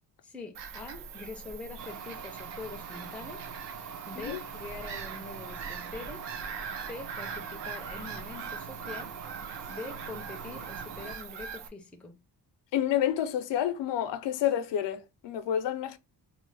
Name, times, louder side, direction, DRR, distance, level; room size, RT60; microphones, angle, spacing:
voice 1, 0.2-3.5 4.1-6.2 6.8-9.1 9.7-12.2, left 3 dB, 5° left, 0.4 m, -44 dB
Bird vocalization bird call bird song / Gull seagull, 0.5-11.7, right 6 dB, 80° right, 0.7 m, -42 dB
sound 1, 1.8-11.2, right 6 dB, 45° right, 0.6 m, -43 dB
voice 2, 12.7-16.0, left 10 dB, 85° left, 0.6 m, -29 dB
3.1 x 2.0 x 3.8 m
wide cardioid pair, 155°, 42 cm